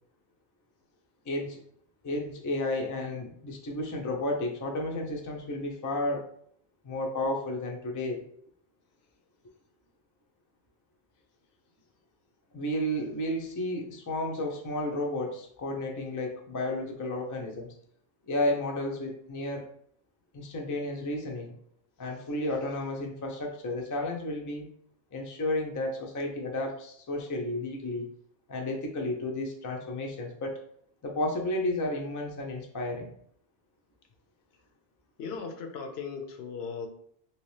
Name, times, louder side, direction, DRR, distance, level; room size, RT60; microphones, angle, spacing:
voice 1, 1.2-1.6 2.0-6.3 6.8-8.2 12.5-17.7 18.3-19.7 20.3-21.5 22.0-24.7 25.1-28.1 28.5-30.6 31.0-33.1, left 1 dB, 30° left, 1 dB, 0.3 m, -32 dB
voice 2, 35.2-36.9, left 5 dB, 75° left, 5 dB, 0.8 m, -37 dB
3.0 x 2.8 x 3.1 m, 0.65 s
omnidirectional pair, 1.1 m